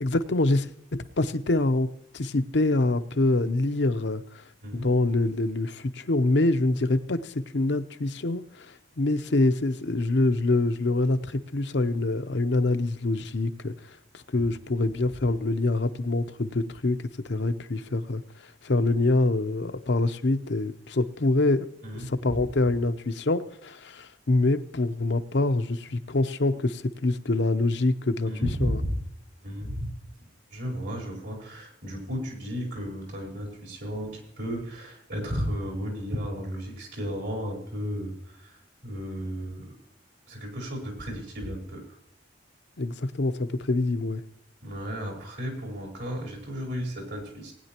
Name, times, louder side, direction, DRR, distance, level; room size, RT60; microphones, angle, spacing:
voice 1, 0.0-1.9 2.1-4.4 4.7-17.0 17.2-21.7 21.9-28.8 42.8-44.2, left 2 dB, 70° left, 0.7 m, -25 dB
voice 2, 28.2-28.9 29.4-29.9 30.5-39.7 40.3-41.8 44.6-47.5, equal, 70° right, 4.5 m, -34 dB
19.5 x 9.8 x 2.9 m
head